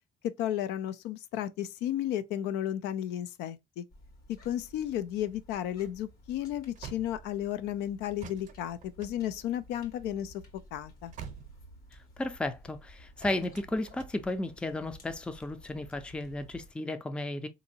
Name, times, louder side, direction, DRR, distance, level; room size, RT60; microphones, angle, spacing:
voice 1, 0.2-3.8 4.4-10.4 10.7-11.1, left 11 dB, 85° left, 0.4 m, -33 dB
sound 1, 3.9-16.7, equal, 60° left, 1.3 m, -55 dB
sound 2, 5.3-7.7 8.2-12.1 13.2-14.8 15.4-16.4, right 8 dB, 45° right, 0.6 m, -48 dB
voice 2, 12.2-17.5, left 2 dB, 5° left, 0.4 m, -34 dB
3.8 x 2.6 x 2.7 m
cardioid pair, 110°, 17 cm